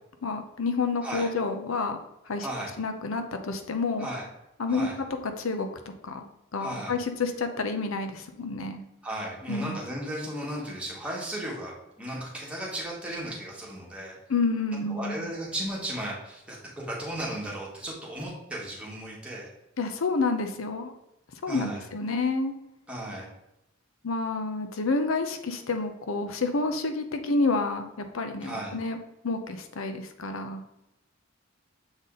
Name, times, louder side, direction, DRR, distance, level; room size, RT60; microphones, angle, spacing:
voice 1, 0.2-2.5 2.8-4.1 4.6-5.1 5.4-5.7 6.0-6.2 6.5-8.8 9.5-9.8 14.3-15.3 19.8-20.9 21.4-22.5 24.0-29.0 29.2-30.6, left 3 dB, 85° left, 7 dB, 0.7 m, -29 dB
voice 2, 2.4-2.7 4.0-4.2 4.7-4.9 6.6-6.9 9.0-14.2 14.9-19.5 21.5-21.8 22.9-23.3 28.4-28.8, right 1 dB, 5° right, -4 dB, 1.7 m, -35 dB
7.1 x 4.1 x 3.8 m, 0.88 s
head